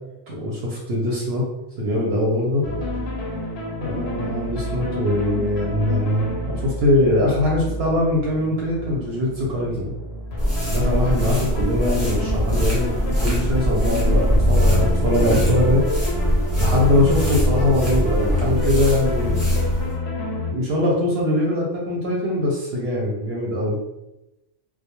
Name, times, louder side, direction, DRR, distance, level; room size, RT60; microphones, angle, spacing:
voice 1, 0.3-1.4 1.8-2.6 3.8-9.9 10.7-12.9 13.2-15.8 16.6-19.4 20.5-23.8, left 1 dB, 65° right, -3 dB, 0.8 m, -22 dB
sound 1, 2.6-20.5, left 1 dB, 70° left, 0.8 m, -27 dB
sound 2, 10.4-19.9, equal, 15° right, 0.6 m, -22 dB
2.2 x 2.1 x 2.9 m, 0.93 s
omnidirectional pair, 1.2 m